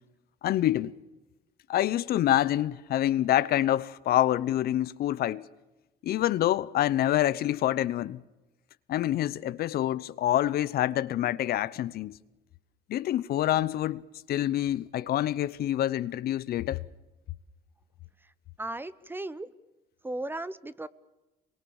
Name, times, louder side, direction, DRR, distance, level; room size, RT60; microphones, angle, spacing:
voice 1, 0.4-0.9 1.7-5.5 6.0-8.2 8.9-12.2 12.9-16.8, left 13 dB, 65° left, 0.9 m, -26 dB
voice 2, 18.6-19.5 20.0-20.9, right 2 dB, 10° right, 0.9 m, -36 dB
27.0 x 23.0 x 7.2 m
cardioid pair, 110°, 17 cm